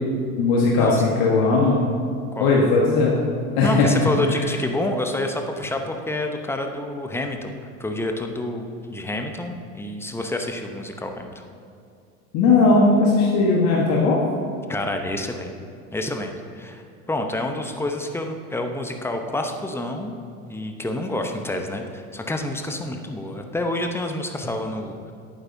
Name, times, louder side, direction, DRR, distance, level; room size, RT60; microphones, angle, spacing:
voice 1, 0.3-1.8 2.4-3.1 3.6-4.4 12.3-14.2, left 3 dB, 55° left, -3 dB, 1.5 m, -18 dB
voice 2, 3.6-7.5 7.8-11.3 14.7-15.5 15.9-16.8 17.1-20.1 20.5-25.1, left 1 dB, 5° left, 4 dB, 0.8 m, -28 dB
11.0 x 8.9 x 2.7 m, 2.5 s
hypercardioid pair, 80°, 43 cm